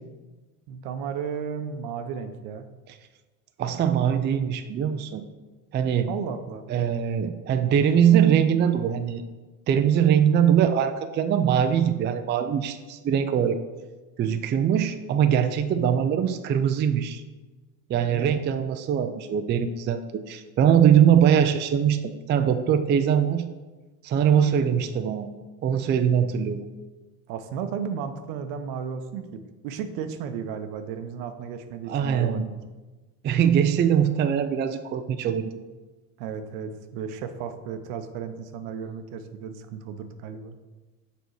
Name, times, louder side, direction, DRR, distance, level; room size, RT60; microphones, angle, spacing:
voice 1, 0.7-2.7 6.1-6.6 18.0-18.4 27.3-32.6 36.2-40.6, right 7 dB, 65° right, 9 dB, 0.9 m, -34 dB
voice 2, 3.6-5.2 5.7-6.1 6.7-9.2 9.7-13.6 14.2-17.2 17.9-23.5 24.0-25.3 25.6-26.6 31.9-32.5 33.2-35.6, right 8 dB, 25° right, 8 dB, 0.4 m, -22 dB
6.8 x 4.5 x 4.7 m, 1.2 s
hypercardioid pair, 85°, 45 cm